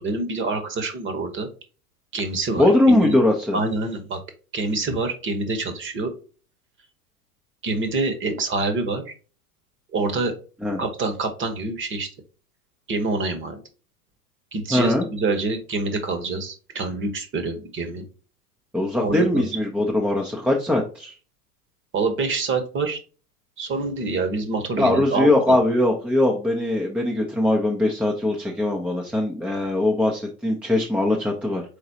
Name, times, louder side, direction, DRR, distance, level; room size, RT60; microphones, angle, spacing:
voice 1, 0.0-1.5 2.1-3.2 3.5-4.2 4.5-6.1 7.6-9.1 9.9-10.3 10.8-12.1 12.9-13.6 14.5-18.0 19.0-19.5 21.9-23.0 23.6-25.6, right 3 dB, 25° right, 8 dB, 1.1 m, -26 dB
voice 2, 2.6-3.6 10.6-10.8 14.7-15.1 18.7-21.1 24.8-31.6, left 1 dB, 5° right, 0 dB, 0.6 m, -21 dB
5.1 x 3.8 x 2.7 m, 0.36 s
hypercardioid pair, 100°, 47 cm